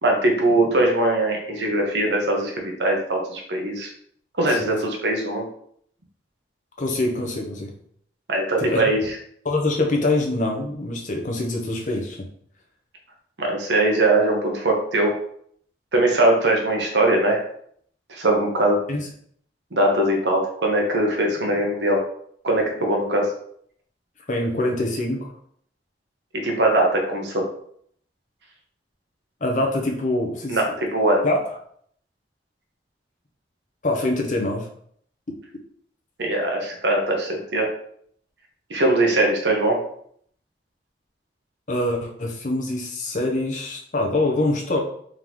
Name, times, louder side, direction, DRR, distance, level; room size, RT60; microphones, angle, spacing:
voice 1, 0.0-3.9 4.4-5.4 8.3-9.1 13.4-15.1 15.9-17.4 18.1-18.8 19.7-22.0 22.4-23.3 26.3-27.4 30.5-31.2 36.2-37.7 38.7-39.8, right 1 dB, 75° right, 1 dB, 1.0 m, -21 dB
voice 2, 6.8-7.7 8.6-8.8 9.4-12.3 18.9-19.1 24.3-25.3 29.4-30.6 31.2-31.5 33.8-34.7 41.7-44.8, left 2 dB, 45° left, 1 dB, 0.8 m, -24 dB
3.7 x 3.7 x 3.1 m, 0.64 s
head